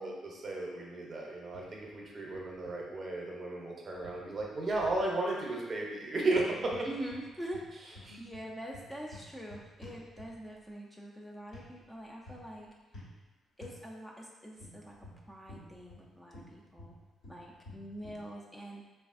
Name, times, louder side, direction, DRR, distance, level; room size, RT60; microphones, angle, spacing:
voice 1, 0.0-6.9 8.1-8.2, right 2 dB, 40° right, -2 dB, 0.7 m, -34 dB
sound 1, 1.5-2.0 2.3-2.8 4.0-5.0 6.3-7.3 7.5-10.5 11.5-11.7 12.2-12.5 12.9-13.2 13.6-13.8 14.6-16.1 16.3-18.2, left 1 dB, 80° left, 1.3 m, -51 dB
voice 2, 6.8-7.6 7.9-12.7 13.6-17.0 17.3-18.9, right 1 dB, 10° left, -2 dB, 0.4 m, -44 dB
3.1 x 2.4 x 2.5 m, 1.2 s
cardioid pair, 90°, 0 cm